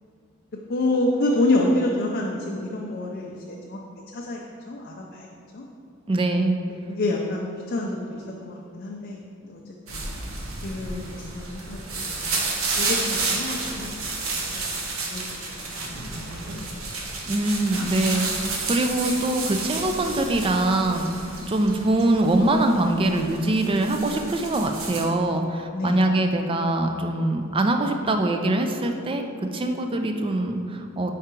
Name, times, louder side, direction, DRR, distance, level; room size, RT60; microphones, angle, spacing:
voice 1, 0.7-3.8 4.1-4.4 4.7-5.3 5.5-5.6 6.9-9.6 9.9-10.0 10.6-11.8 12.0-14.3 14.7-14.9 15.1-15.3 15.7-15.8 16.5-16.7 25.7-26.1, left 2 dB, 50° left, -2 dB, 0.5 m, -27 dB
voice 2, 6.1-6.6 17.3-29.3 29.5-31.1, right 2 dB, 25° right, 5 dB, 0.4 m, -23 dB
sound 1, 9.9-25.0, right 3 dB, 85° right, 0.8 m, -31 dB
4.9 x 4.5 x 4.4 m, 2.4 s
head